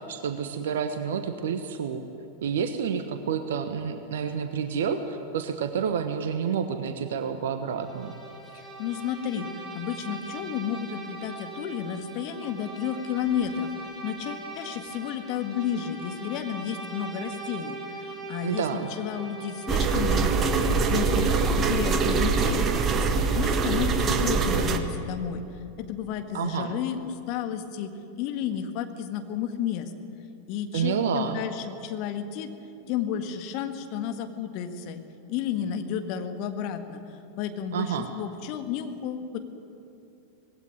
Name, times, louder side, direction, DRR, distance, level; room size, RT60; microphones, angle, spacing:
voice 1, 0.0-2.0 2.4-8.1 18.4-18.9 26.3-26.7 30.7-31.4 37.7-38.1, right 7 dB, 60° right, 8 dB, 1.1 m, -29 dB
Bowed string instrument, 7.7-21.6, right 3 dB, 5° right, 4.7 m, -41 dB
voice 2, 8.5-13.7 14.0-23.0 23.3-25.4 25.8-29.9 30.5-32.5 32.9-35.0 35.3-39.4, left 9 dB, 45° left, 7 dB, 1.7 m, -32 dB
sound 1, 19.7-24.8, right 4 dB, 25° right, 1.5 m, -23 dB
19.0 x 16.5 x 9.7 m, 2.8 s
figure-of-eight pair, 90°, 0 cm